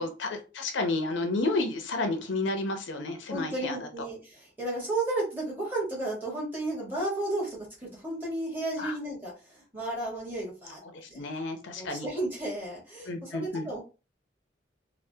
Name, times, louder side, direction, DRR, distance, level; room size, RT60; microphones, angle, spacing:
voice 1, 0.0-3.9 8.8-8.9 10.8-12.1 13.1-13.7, left 2 dB, 80° left, 6 dB, 0.5 m, -31 dB
voice 2, 3.3-10.8 11.1-11.2 11.7-13.8, right 2 dB, 10° right, -4 dB, 1.3 m, -33 dB
3.3 x 2.1 x 2.6 m, 0.33 s
head